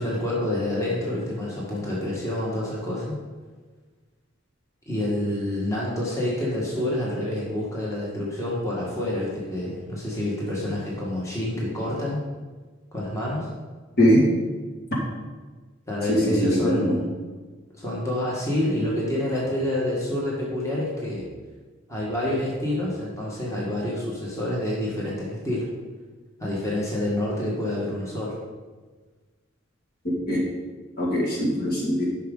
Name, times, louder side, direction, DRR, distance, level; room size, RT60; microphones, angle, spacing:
voice 1, 0.0-3.2 4.9-12.2 12.9-13.5 15.9-17.1 17.7-21.3 21.9-25.7 26.4-28.4, left 1 dB, 15° left, -5 dB, 1.6 m, -28 dB
voice 2, 16.1-17.0 30.0-30.4 31.0-32.1, equal, 50° left, -4 dB, 2.1 m, -21 dB
10.0 x 6.2 x 3.9 m, 1.4 s
head